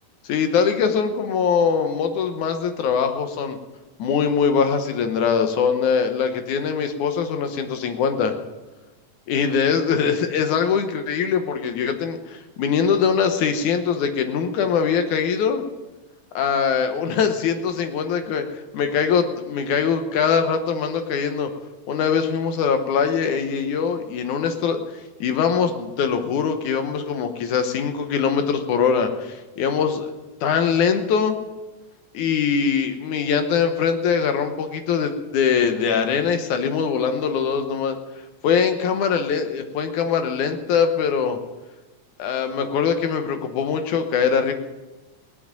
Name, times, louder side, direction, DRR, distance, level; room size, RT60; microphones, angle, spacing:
voice 1, 0.2-3.6 4.0-8.3 9.3-15.6 16.4-21.5 21.9-24.8 25.2-30.1 30.4-31.4 32.1-38.0 38.4-41.4 42.2-44.5, left 6 dB, 70° left, 7 dB, 2.3 m, -22 dB
18.5 x 7.5 x 8.8 m, 1.2 s
omnidirectional pair, 3.9 m